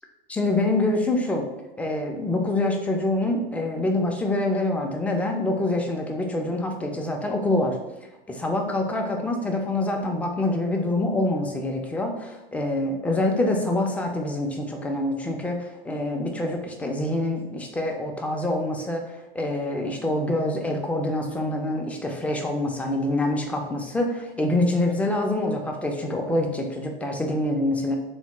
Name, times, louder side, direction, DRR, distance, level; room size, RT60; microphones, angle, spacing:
voice 1, 0.3-1.4 1.8-7.8 8.3-19.0 19.3-27.9, left 2 dB, 5° left, 2 dB, 0.3 m, -25 dB
3.3 x 2.0 x 2.9 m, 0.99 s
hypercardioid pair, 95°, 29 cm